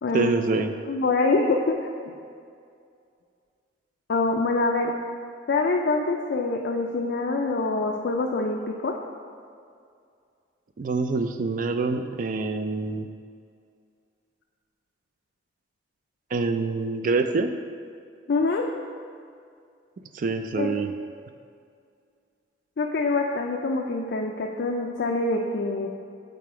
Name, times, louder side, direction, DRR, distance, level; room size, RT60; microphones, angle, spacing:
voice 1, 0.1-0.7 10.8-13.1 16.3-17.5 20.1-20.9, right 3 dB, 45° right, 8 dB, 0.4 m, -25 dB
voice 2, 0.9-2.1 4.1-4.9 5.5-8.9 18.3-18.6 20.6-20.7 22.8-25.9, left 3 dB, 60° left, 1 dB, 0.4 m, -25 dB
7.6 x 4.0 x 4.7 m, 2.3 s
head